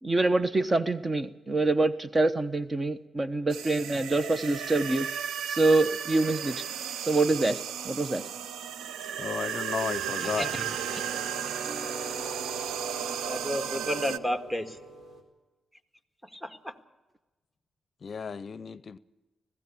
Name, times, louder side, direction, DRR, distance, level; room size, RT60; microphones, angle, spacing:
voice 1, 0.0-5.1 5.5-6.6 7.0-7.6 7.8-8.2, right 2 dB, 30° right, 1.0 m, -25 dB
sound 1, 3.5-14.2, right 9 dB, 90° right, 0.6 m, -34 dB
voice 2, 9.2-10.5 18.0-19.0, left 6 dB, 55° left, 0.6 m, -33 dB
sound 2, 9.9-15.2, right 2 dB, 60° right, 3.9 m, -41 dB
voice 3, 10.2-10.6 10.9-11.0 13.3-14.8 16.3-16.7, left 1 dB, 10° right, 1.8 m, -32 dB
20.0 x 16.0 x 8.5 m
cardioid pair, 60°, 0 cm